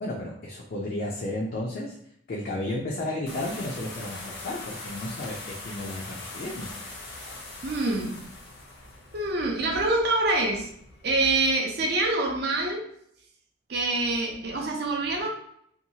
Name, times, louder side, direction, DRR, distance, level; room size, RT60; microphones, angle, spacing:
voice 1, 0.0-2.0 2.3-6.7, left 1 dB, 45° left, -3 dB, 0.4 m, -33 dB
Day Fountain Stopping, 3.3-11.4, left 2 dB, 75° left, 0.8 m, -42 dB
voice 2, 7.6-8.2 9.1-10.7 11.0-12.8 13.7-15.3, right 2 dB, 55° right, 1 dB, 0.6 m, -25 dB
2.7 x 2.3 x 2.7 m, 0.70 s
head